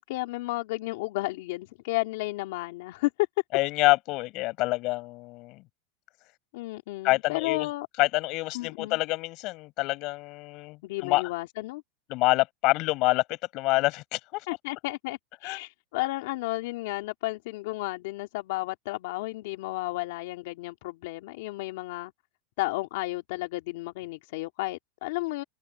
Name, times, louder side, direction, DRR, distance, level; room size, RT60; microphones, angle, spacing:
voice 1, 0.0-3.1 6.5-7.9 8.5-9.0 10.8-11.8 14.5-22.1 22.6-25.4, left 20 dB, 65° left, 2.5 m, -33 dB
voice 2, 3.5-5.6 7.0-7.7 8.0-11.2 12.1-14.4 15.4-15.6, left 21 dB, 50° left, 6.1 m, -27 dB
supercardioid pair, 130°, 0 cm